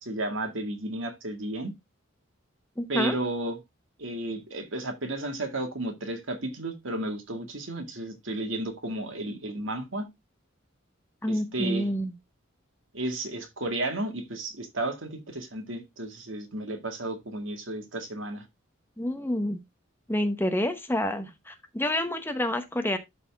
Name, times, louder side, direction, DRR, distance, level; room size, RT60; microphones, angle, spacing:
voice 1, 0.0-1.7 2.9-3.6 4.0-10.1 11.3-11.9 12.9-18.4, right 1 dB, 70° right, 2.1 m, -33 dB
voice 2, 2.8-3.2 11.2-12.1 19.0-19.6 20.1-23.0, left 1 dB, 10° left, 0.9 m, -28 dB
12.5 x 4.2 x 3.6 m
head